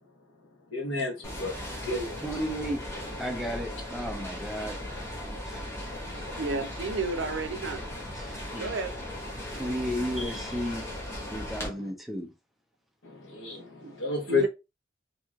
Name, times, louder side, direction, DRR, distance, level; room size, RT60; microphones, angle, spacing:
voice 1, 0.7-1.5 1.8-2.2 13.3-13.7 14.0-14.5, left 3 dB, 85° left, 1.0 m, -30 dB
sound 1, 1.2-11.7, left 1 dB, 15° left, 0.8 m, -37 dB
voice 2, 2.2-2.8 3.2-4.8 5.4-5.6 8.1-8.7 9.5-10.9 11.3-12.3, equal, ahead, 0.4 m, -33 dB
voice 3, 6.4-7.8 8.6-8.9 13.8-13.9 14.3-14.5, right 3 dB, 80° right, 0.5 m, -31 dB
2.9 x 2.8 x 2.3 m
head